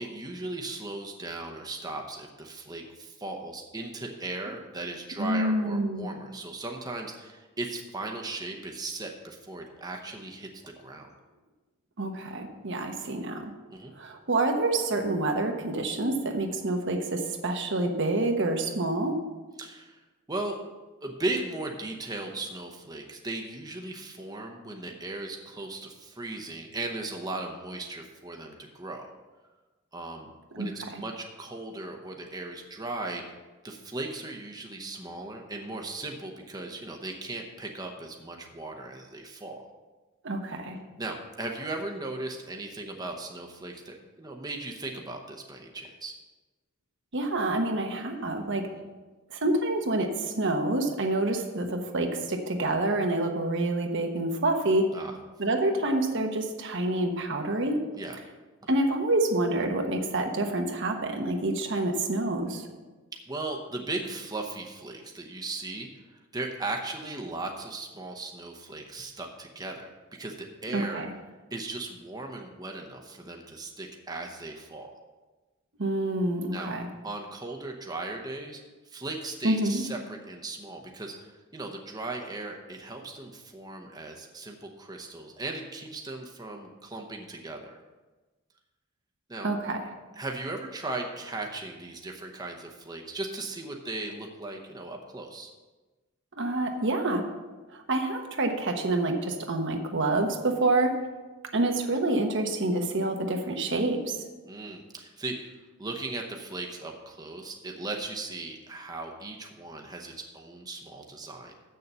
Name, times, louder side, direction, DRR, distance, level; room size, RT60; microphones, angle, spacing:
voice 1, 0.0-11.1 13.7-13.9 19.6-20.0 20.3-20.6 21.0-29.1 29.9-30.3 30.6-33.3 33.6-39.7 41.0-46.2 54.9-55.2 57.9-58.2 63.3-71.0 71.5-74.9 76.5-76.7 77.0-87.8 89.3-89.5 90.2-95.5 104.4-105.5 105.8-111.5, right 2 dB, 20° right, 2 dB, 0.8 m, -37 dB
voice 2, 5.2-6.1 12.0-13.5 14.0-19.2 30.5-30.7 40.2-40.8 47.1-48.7 49.3-54.9 55.4-57.8 58.7-62.7 70.7-71.1 75.8-76.9 79.4-79.8 89.4-89.8 96.4-97.3 97.7-101.0 101.5-104.2, right 2 dB, 65° right, 4 dB, 1.1 m, -27 dB
7.3 x 6.7 x 6.8 m, 1.2 s
head